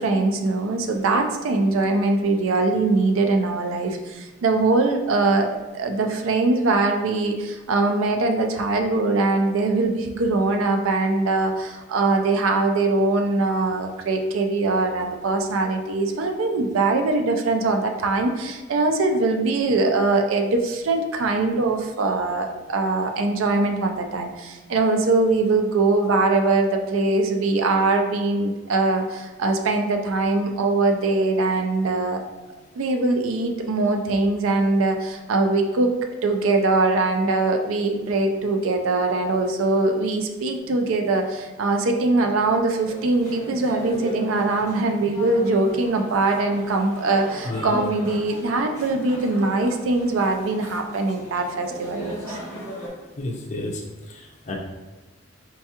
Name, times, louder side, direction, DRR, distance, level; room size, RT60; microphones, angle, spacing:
voice 1, 0.0-32.2 32.8-35.9 36.2-52.4, right 3 dB, 75° right, 4 dB, 0.4 m, -22 dB
sound 1, 42.9-52.9, right 1 dB, 10° left, 0.9 m, -37 dB
voice 2, 47.4-47.8 53.2-53.8 54.1-54.6, left 2 dB, 35° left, 0 dB, 0.4 m, -31 dB
4.5 x 2.3 x 2.8 m, 1.2 s
head